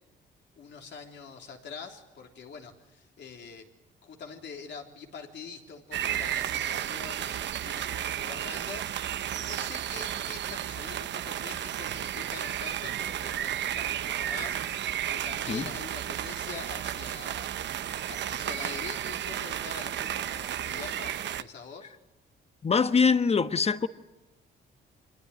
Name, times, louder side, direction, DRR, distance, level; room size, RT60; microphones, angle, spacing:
voice 1, 0.6-3.7 4.0-14.6 15.1-17.5 18.1-21.9, left 5 dB, 65° left, 3.6 m, -44 dB
sound 1, 5.9-21.4, right 11 dB, 65° right, 0.8 m, -33 dB
voice 2, 22.6-23.9, left 5 dB, 30° left, 1.2 m, -23 dB
25.0 x 20.0 x 9.6 m
cardioid pair, 90°, 20 cm